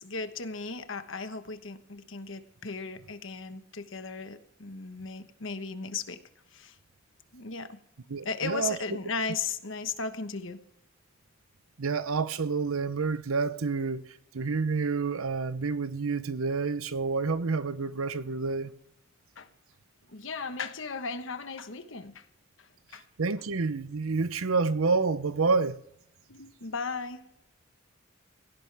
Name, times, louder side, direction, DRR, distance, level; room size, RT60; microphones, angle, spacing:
voice 1, 0.0-6.2 6.5-6.7 7.3-7.8 8.2-10.6 19.4-19.5 20.1-22.2 22.9-23.0 26.3-27.2, left 4 dB, 70° left, 1.3 m, -36 dB
voice 2, 8.1-8.8 11.8-14.0 14.3-18.7 23.2-25.8, right 4 dB, 85° right, 0.7 m, -28 dB
17.0 x 15.5 x 3.5 m
head